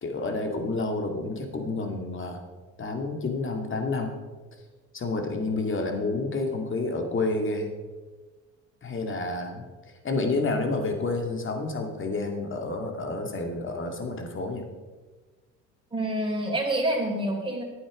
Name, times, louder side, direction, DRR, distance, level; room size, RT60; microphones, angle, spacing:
voice 1, 0.0-2.4 2.8-4.1 4.9-7.7 8.8-9.7 10.0-14.7, left 3 dB, 35° left, 4 dB, 2.3 m, -29 dB
voice 2, 15.9-17.6, right 1 dB, 15° right, -1 dB, 4.0 m, -27 dB
11.5 x 8.7 x 5.2 m, 1.3 s
supercardioid pair, 75°, 33 cm